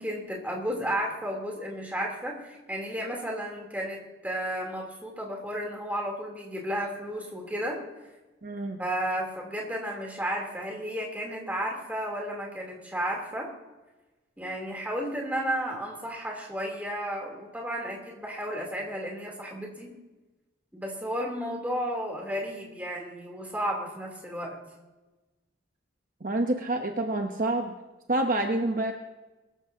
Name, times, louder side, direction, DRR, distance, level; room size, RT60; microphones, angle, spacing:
voice 1, 0.0-7.8 8.8-13.5 14.4-19.9 20.7-24.6, equal, 10° right, -1 dB, 3.1 m, -33 dB
voice 2, 8.4-8.8 26.2-27.7 28.1-28.9, right 2 dB, 45° right, 3 dB, 0.9 m, -27 dB
23.0 x 13.5 x 2.8 m, 1.1 s
head